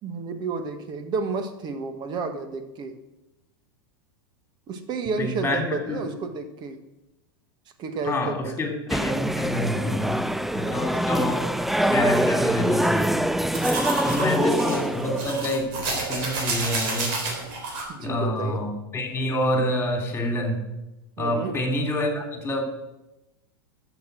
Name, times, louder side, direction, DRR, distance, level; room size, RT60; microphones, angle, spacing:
voice 1, 0.0-3.0 4.7-6.8 7.8-8.6 10.6-10.8 13.5-14.6 17.9-18.6 21.2-21.6, right 4 dB, 35° right, 8 dB, 1.6 m, -31 dB
voice 2, 5.2-6.0 8.0-11.5 11.9-13.1 14.0-17.2 18.0-20.6 21.2-22.6, left 1 dB, 15° left, 3 dB, 3.1 m, -27 dB
sound 1, 8.9-15.3, right 1 dB, ahead, 0.3 m, -24 dB
sound 2, 13.5-17.8, right 3 dB, 60° right, 3.6 m, -29 dB
11.5 x 7.3 x 6.2 m, 0.96 s
supercardioid pair, 125°, 13 cm